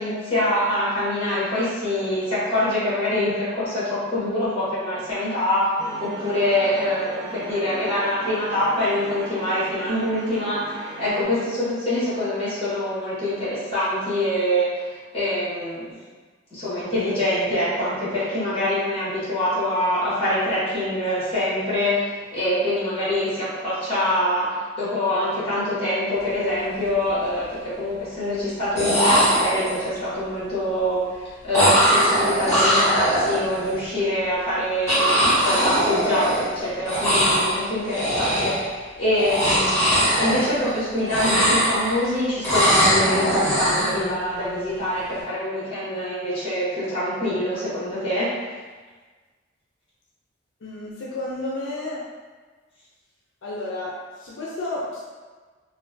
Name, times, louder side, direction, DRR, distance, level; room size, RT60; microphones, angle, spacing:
voice 1, 0.0-5.7 6.0-15.9 16.5-39.8 40.2-48.3, left 1 dB, 30° left, -10 dB, 1.4 m, -25 dB
sound 1, 5.8-11.2, right 2 dB, 20° right, 0.5 m, -37 dB
sound 2, 26.3-26.5 26.9-27.5 28.5-28.6 28.8-30.0 31.5-33.7 34.9-36.6 36.8-37.6 37.9-38.7 39.1-40.8 41.0-42.1 42.4-44.0, equal, 15° left, 1.1 m, -21 dB
voice 2, 50.6-52.0 53.4-55.0, left 2 dB, 80° left, -5 dB, 0.4 m, -31 dB
3.2 x 2.2 x 2.5 m, 1.4 s
head